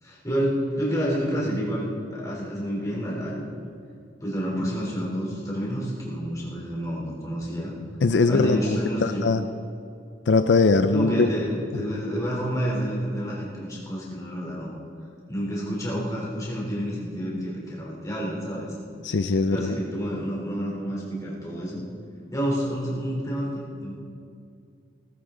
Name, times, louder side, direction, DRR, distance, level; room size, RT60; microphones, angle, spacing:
voice 1, 0.0-3.5 4.2-7.7 8.3-9.3 10.9-14.8 15.3-18.7 19.5-21.8 22.3-24.0, equal, 20° left, -4 dB, 3.6 m, -29 dB
voice 2, 8.0-8.6 9.0-9.4 10.3-11.3 19.0-19.8, left 3 dB, 75° left, 9 dB, 0.5 m, -20 dB
19.0 x 14.0 x 3.9 m, 2.5 s
head